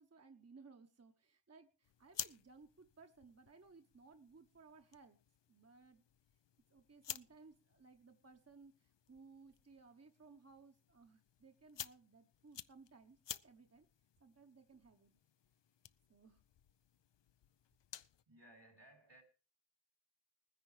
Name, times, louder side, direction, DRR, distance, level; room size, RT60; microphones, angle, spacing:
voice 1, 0.0-5.2 5.5-6.0 6.7-13.9 14.2-15.2 16.1-16.4, right 4 dB, 35° right, 1.0 m, -61 dB
sound 1, 1.8-18.2, left 10 dB, 75° left, 0.6 m, -54 dB
voice 2, 18.3-19.2, right 1 dB, 75° right, 3.8 m, -62 dB
20.0 x 10.0 x 3.3 m
wide cardioid pair, 55°, 43 cm